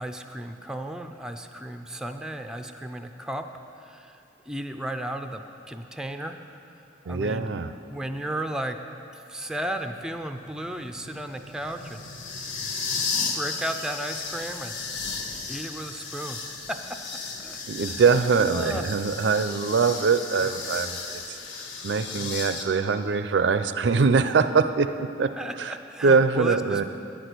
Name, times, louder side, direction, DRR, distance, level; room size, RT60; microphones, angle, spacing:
voice 1, 0.0-3.5 3.8-6.4 7.0-7.5 7.9-8.8 9.1-12.0 12.4-12.5 13.0-13.1 13.3-14.7 15.5-16.8 17.4-17.6 17.9-18.0 18.5-18.9 22.1-22.3 25.4-26.8, right 1 dB, 5° right, 5 dB, 0.4 m, -34 dB
voice 2, 7.1-7.7 17.7-21.0 21.3-21.4 21.8-25.3 25.6-25.7 26.0-26.8, right 5 dB, 70° right, 10 dB, 0.4 m, -23 dB
sound 1, 9.5-22.6, left 4 dB, 80° left, 1.1 m, -35 dB
10.5 x 6.1 x 8.1 m, 2.9 s
head